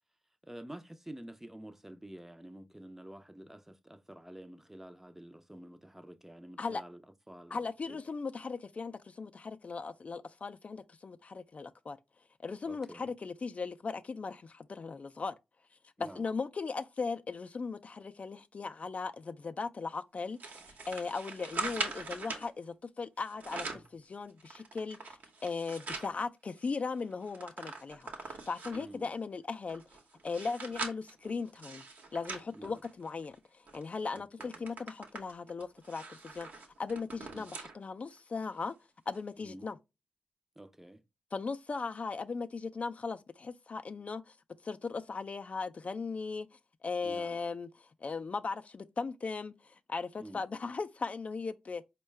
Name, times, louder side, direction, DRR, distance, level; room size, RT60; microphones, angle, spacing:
voice 1, 0.4-7.0 7.3-7.6 7.9-8.0 12.7-13.1 16.0-16.2 28.7-29.1 32.5-32.8 34.1-34.6 37.3-37.4 39.5-39.7 40.6-41.0 47.0-47.4 50.2-50.4, right 1 dB, 10° right, 0.5 m, -49 dB
voice 2, 7.5-12.0 12.4-15.3 16.0-20.6 20.9-29.8 30.2-31.8 32.1-38.7 39.1-39.8 41.3-44.4 44.6-51.8, left 4 dB, 45° left, 0.3 m, -38 dB
sound 1, 20.4-22.5 23.2-23.9 24.4-26.1 26.6-26.7 26.9-28.9 29.5-33.3 33.7-33.8 34.1-37.8 38.2-38.3 39.1-39.2, right 3 dB, 70° right, 0.9 m, -42 dB
4.4 x 2.2 x 3.2 m
supercardioid pair, 45°, 3 cm